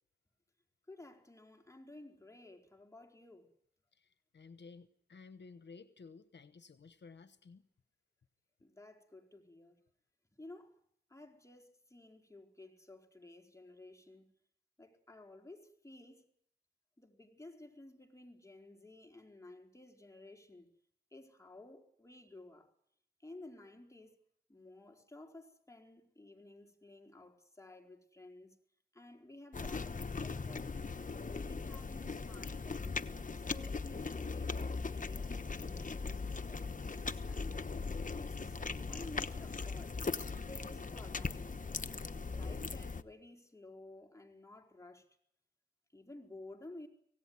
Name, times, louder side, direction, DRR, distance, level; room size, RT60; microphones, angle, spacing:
voice 1, 0.9-3.5 8.6-9.8 10.4-10.8 11.1-14.3 14.8-16.2 17.0-20.7 21.1-22.7 23.2-24.2 24.5-28.5 28.9-30.7 31.2-32.9 33.3-36.2 36.5-37.6 38.2-40.0 40.4-41.8 42.3-45.1 45.9-46.9, left 2 dB, 15° left, 4.5 m, -54 dB
voice 2, 4.3-7.6, left 4 dB, 75° left, 1.0 m, -54 dB
sound 1, 29.5-43.0, left 4 dB, 45° left, 1.1 m, -39 dB
25.0 x 18.0 x 9.6 m
wide cardioid pair, 65°, 18 cm